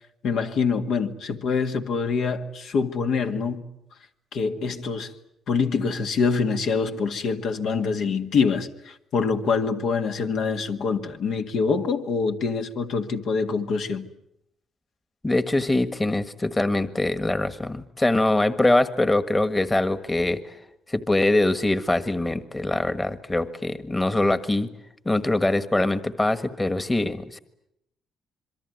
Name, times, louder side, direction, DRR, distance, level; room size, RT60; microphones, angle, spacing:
voice 1, 0.2-3.6 4.3-5.1 5.5-14.1, left 5 dB, 70° left, 2.0 m, -25 dB
voice 2, 15.2-20.6 20.9-24.7 25.0-27.4, left 2 dB, 15° left, 1.6 m, -23 dB
26.5 x 23.0 x 9.4 m
cardioid pair, 90°, 0 cm